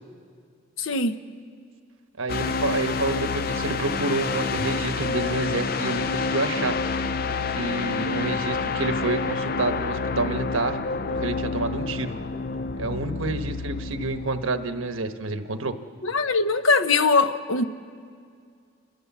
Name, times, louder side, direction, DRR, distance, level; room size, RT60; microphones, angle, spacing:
voice 1, 0.8-1.2 16.0-17.6, left 4 dB, 75° left, 9 dB, 0.9 m, -21 dB
voice 2, 2.2-6.8 7.6-10.8 11.1-12.2 12.8-15.7, right 3 dB, 85° right, 8 dB, 1.2 m, -28 dB
sound 1, 2.3-14.3, left 4 dB, 45° left, 0.6 m, -28 dB
28.0 x 14.5 x 7.4 m, 2.2 s
head